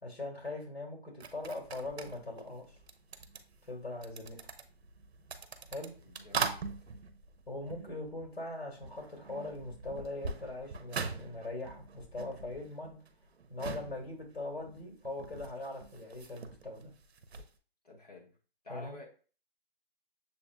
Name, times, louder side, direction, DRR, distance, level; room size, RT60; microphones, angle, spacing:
voice 1, 0.0-2.8 3.7-4.4 5.7-5.9 7.5-13.0 13.5-16.9 18.7-18.9, left 2 dB, 75° left, 2.0 m, -41 dB
sound 1, 1.2-8.5 8.8-17.5, right 5 dB, 75° right, 0.7 m, -42 dB
voice 2, 6.0-6.6 17.8-18.4 18.6-19.1, left 3 dB, 40° left, 1.4 m, -50 dB
6.8 x 2.5 x 2.2 m
hypercardioid pair, 175°, 32 cm